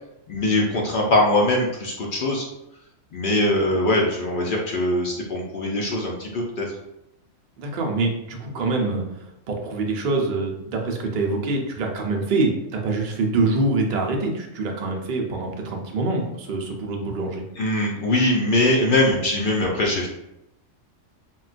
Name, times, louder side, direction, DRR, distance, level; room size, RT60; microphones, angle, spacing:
voice 1, 0.3-2.5 3.1-6.7 17.6-20.1, left 1 dB, 60° left, -1 dB, 0.5 m, -22 dB
voice 2, 7.6-9.0 9.5-17.4, right 3 dB, 55° right, 1 dB, 0.5 m, -25 dB
3.8 x 2.2 x 2.4 m, 0.88 s
omnidirectional pair, 1.3 m